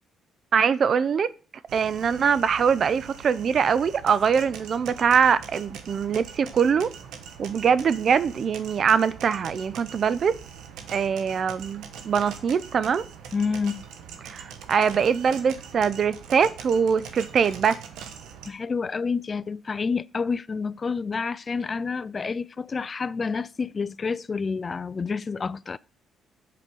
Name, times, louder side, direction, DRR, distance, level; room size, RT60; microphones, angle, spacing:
voice 1, 0.5-1.3 1.7-6.9 7.4-10.4 10.9-13.0 14.2-17.8, right 6 dB, 55° right, 0.5 m, -23 dB
sound 1, 1.7-18.5, right 7 dB, 85° right, 1.1 m, -42 dB
voice 2, 13.3-13.8 18.5-25.8, left 5 dB, 35° left, 0.3 m, -29 dB
7.5 x 5.2 x 6.2 m
cardioid pair, 80°, 0 cm